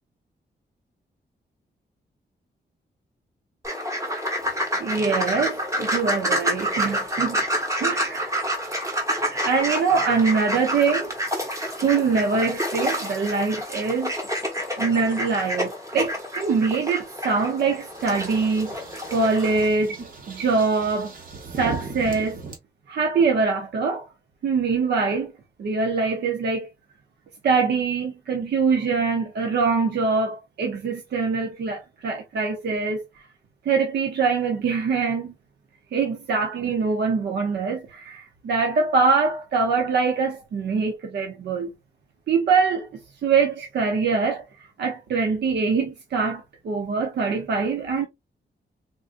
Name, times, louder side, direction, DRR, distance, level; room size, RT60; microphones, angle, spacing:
sound 1, 3.6-19.7, equal, 15° right, 1.3 m, -28 dB
voice 1, 4.8-7.4 7.8-8.4 9.3-11.1 11.8-14.1 14.8-18.7 19.1-20.0 20.3-21.1 21.6-22.4 22.9-24.0 24.4-25.3 25.6-26.7 27.4-33.0 33.6-35.3 35.9-41.7 42.3-48.1, right 4 dB, 70° right, 0.7 m, -23 dB
sound 2, 17.9-22.6, right 4 dB, 50° right, 1.2 m, -37 dB
3.8 x 2.6 x 2.5 m
wide cardioid pair, 155°, 18 cm